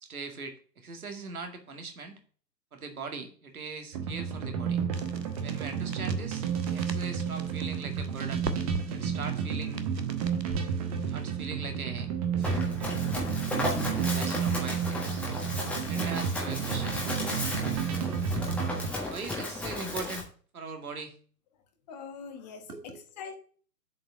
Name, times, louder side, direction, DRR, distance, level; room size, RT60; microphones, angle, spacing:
voice 1, 0.0-2.2 2.7-4.8 5.4-6.4 6.7-8.5 8.9-9.9 11.1-12.8 14.0-15.4 15.9-17.0 19.1-20.2 20.5-21.2 22.7-23.0, right 4 dB, 60° right, 5 dB, 2.1 m, -40 dB
sound 1, 3.9-18.9, right 7 dB, 20° right, 1.0 m, -31 dB
sound 2, 4.9-11.5, right 4 dB, 80° right, 1.2 m, -41 dB
Run, 12.4-20.2, left 2 dB, ahead, 1.3 m, -34 dB
voice 2, 21.9-23.4, left 6 dB, 25° left, 5 dB, 1.3 m, -43 dB
7.5 x 5.1 x 7.2 m, 0.43 s
figure-of-eight pair, 125°, 49 cm